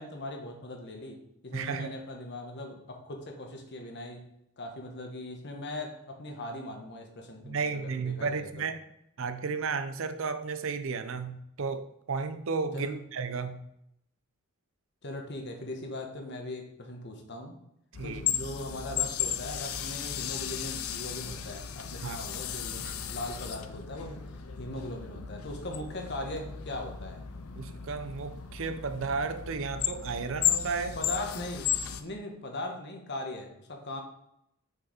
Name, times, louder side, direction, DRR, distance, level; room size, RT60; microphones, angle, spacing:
voice 1, 0.0-4.3 4.6-8.7 12.7-13.0 15.0-17.6 18.0-27.2 31.0-34.0, left 1 dB, 55° left, 3 dB, 1.2 m, -40 dB
voice 2, 1.5-1.9 7.4-8.8 9.2-13.6 18.0-18.2 22.0-22.3 22.8-22.9 27.6-31.0, right 4 dB, 65° right, 10 dB, 0.6 m, -33 dB
sound 1, 17.9-32.0, left 9 dB, 85° left, 0.6 m, -35 dB
6.4 x 4.8 x 5.0 m, 0.78 s
head